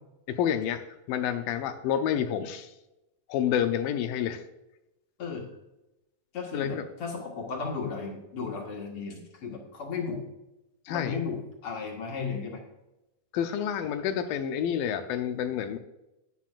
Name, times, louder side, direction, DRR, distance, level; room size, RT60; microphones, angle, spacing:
voice 1, 0.3-0.8 1.1-2.7 3.3-4.4 6.5-6.9 10.9-11.2 13.3-15.8, left 9 dB, 80° left, 8 dB, 2.4 m, -29 dB
voice 2, 6.3-10.2 10.9-12.6, left 5 dB, 50° left, 0 dB, 2.1 m, -35 dB
11.0 x 9.4 x 2.5 m, 0.94 s
omnidirectional pair, 4.1 m